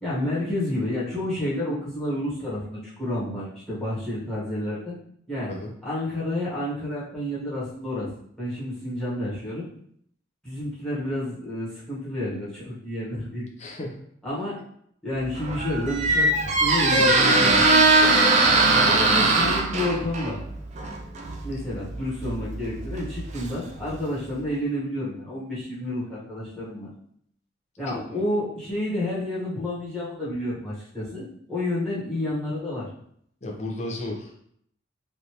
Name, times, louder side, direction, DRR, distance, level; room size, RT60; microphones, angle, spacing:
voice 1, 0.0-4.9 5.3-5.5 5.8-8.1 8.4-9.7 10.4-13.5 13.8-13.9 14.2-14.5 15.0-18.1 18.7-20.4 21.4-26.9 27.8-32.9, left 1 dB, 5° left, -9 dB, 1.2 m, -30 dB
voice 2, 13.6-14.0 18.8-19.2 27.9-28.3 33.4-34.4, left 1 dB, 35° left, -1 dB, 0.6 m, -34 dB
Squeak, 15.2-24.0, right 2 dB, 35° right, 0.3 m, -21 dB
3.3 x 2.6 x 2.9 m, 0.67 s
head